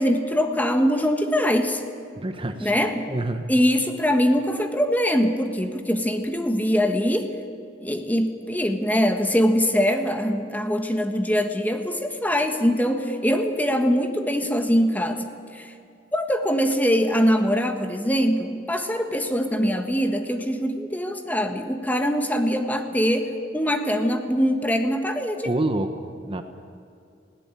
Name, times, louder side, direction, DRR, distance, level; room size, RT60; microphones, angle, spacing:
voice 1, 0.0-1.8 2.6-3.1 3.5-7.4 7.8-15.2 15.5-15.7 16.1-25.5, equal, 10° left, 6 dB, 1.4 m, -23 dB
voice 2, 2.2-2.7 3.1-3.5 25.4-26.4, right 1 dB, 30° right, 7 dB, 1.0 m, -27 dB
20.0 x 17.0 x 8.9 m, 2.4 s
head